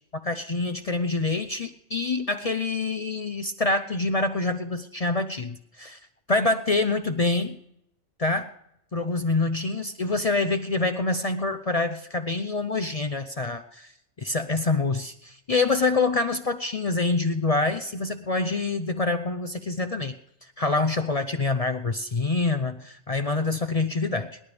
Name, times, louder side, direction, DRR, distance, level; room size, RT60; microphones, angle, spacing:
voice 1, 0.2-6.0 6.3-7.6 8.2-8.5 8.9-13.9 14.2-20.1 20.6-24.4, left 3 dB, 40° left, 9 dB, 0.6 m, -26 dB
28.5 x 11.5 x 3.4 m, 0.79 s
omnidirectional pair, 1.3 m